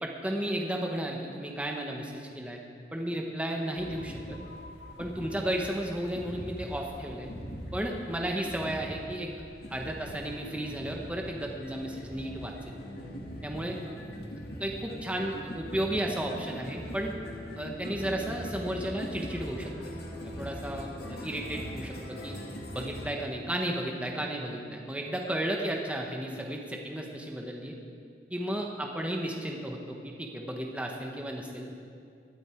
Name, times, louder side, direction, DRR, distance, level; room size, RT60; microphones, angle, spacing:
voice 1, 0.0-2.6 2.9-4.4 5.0-7.3 7.7-9.3 9.7-12.5 13.4-13.8 14.6-17.1 17.6-19.7 20.2-22.4 22.7-27.7 28.3-31.7, right 1 dB, 5° right, 0 dB, 1.1 m, -33 dB
sound 1, 3.8-23.1, equal, 60° left, 1.9 m, -41 dB
19.0 x 12.0 x 4.6 m, 2.3 s
head